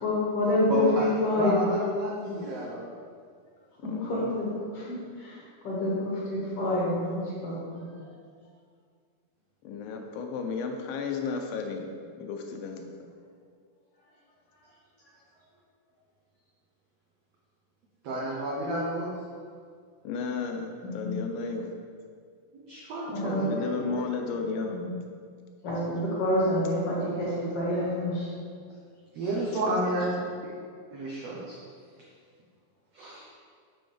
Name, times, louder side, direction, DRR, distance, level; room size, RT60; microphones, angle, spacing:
voice 1, 0.0-0.9 1.2-1.6 3.8-4.5 4.7-4.8 5.2-7.8 20.8-21.1 23.1-23.5 24.6-24.8 25.6-28.3, left 1 dB, 50° left, -7 dB, 2.0 m, -28 dB
voice 2, 0.7-2.9 18.0-19.1 22.5-23.7 29.1-30.5 30.9-31.6 32.9-33.3, right 1 dB, 85° right, -4 dB, 1.4 m, -31 dB
voice 3, 3.9-4.4 9.6-11.9 12.2-12.9 20.0-21.7 23.2-24.8 29.5-29.8 30.2-30.3, left 5 dB, 85° left, 4 dB, 2.4 m, -34 dB
6.9 x 6.2 x 3.3 m, 2.1 s
omnidirectional pair, 4.1 m